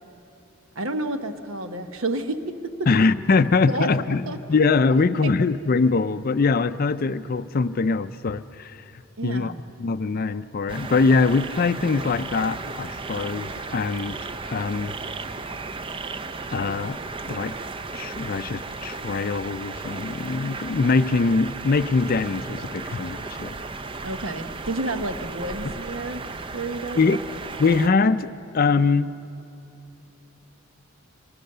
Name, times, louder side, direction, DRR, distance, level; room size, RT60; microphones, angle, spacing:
voice 1, 0.7-2.9 3.6-4.4 4.9-5.3 9.2-9.6 24.0-26.2 26.5-27.2, right 2 dB, 70° right, 8 dB, 1.1 m, -30 dB
voice 2, 2.9-8.8 9.2-9.5 9.8-14.2 14.5-14.9 16.5-17.0 17.3-17.5 17.9-23.6 25.6-25.7 27.0-27.2 27.6-29.1, left 4 dB, 45° left, 13 dB, 0.4 m, -22 dB
sound 1, 10.7-27.9, right 3 dB, 25° right, 0.5 m, -35 dB
24.5 x 19.0 x 6.7 m, 2.8 s
head